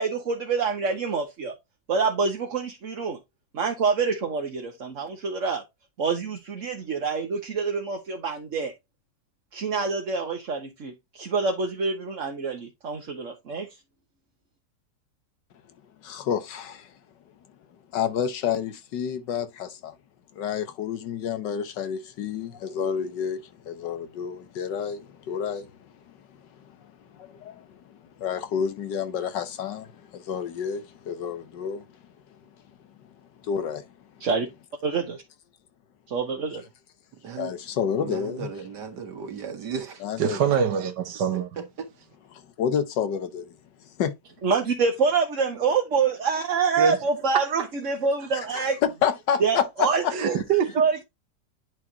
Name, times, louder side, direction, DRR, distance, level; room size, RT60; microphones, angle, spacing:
voice 1, 0.0-1.5 1.9-3.2 3.5-5.6 6.0-8.7 9.5-13.7 34.2-34.5 34.8-35.2 36.1-36.6 44.4-48.8 49.4-50.4 50.7-51.0, right 5 dB, 50° right, 1.5 m, -26 dB
voice 2, 16.0-16.9 17.9-19.9 20.4-25.9 27.1-31.9 33.4-33.9 37.4-38.5 40.0-40.4 42.3-43.5 44.0-44.2 48.5-50.1, left 8 dB, 85° left, 1.7 m, -29 dB
voice 3, 37.2-37.5 38.0-40.0 41.3-41.9, right 6 dB, 75° right, 2.3 m, -36 dB
voice 4, 40.2-41.5 46.8-47.0 47.3-47.5 50.1-50.7, right 7 dB, 90° right, 1.8 m, -24 dB
10.5 x 4.7 x 2.8 m
omnidirectional pair, 1.9 m